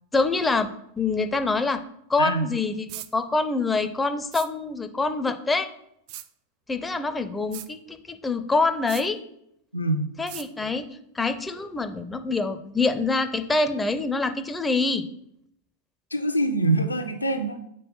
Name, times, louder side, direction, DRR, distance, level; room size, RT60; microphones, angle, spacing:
voice 1, 0.1-0.7 1.0-1.8 2.1-5.7 6.7-9.2 10.2-10.9 11.1-15.0, left 3 dB, 10° left, 9 dB, 0.5 m, -25 dB
voice 2, 2.2-2.5 9.7-10.1 16.1-17.6, right 2 dB, 80° left, 6 dB, 0.7 m, -24 dB
sound 1, 2.9-3.1 4.3-4.5 6.1-6.3 7.5-7.7 8.9-9.1 10.3-10.5, right 13 dB, 45° right, 0.4 m, -38 dB
5.4 x 4.2 x 5.5 m, 0.74 s
figure-of-eight pair, 90°, 0 cm